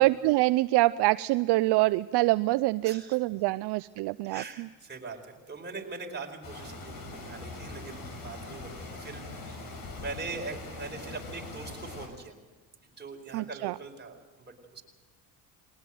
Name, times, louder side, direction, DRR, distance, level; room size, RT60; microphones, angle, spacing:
voice 1, 0.0-4.7 13.3-13.8, right 19 dB, 70° right, 15 dB, 0.6 m, -25 dB
voice 2, 2.8-3.2 4.2-9.6 9.9-12.3 12.8-14.8, right 3 dB, 25° right, 2 dB, 4.8 m, -42 dB
sound 1, 6.4-12.1, left 3 dB, 55° left, 6.0 m, -42 dB
21.5 x 19.0 x 7.8 m, 1.3 s
supercardioid pair, 75°, 42 cm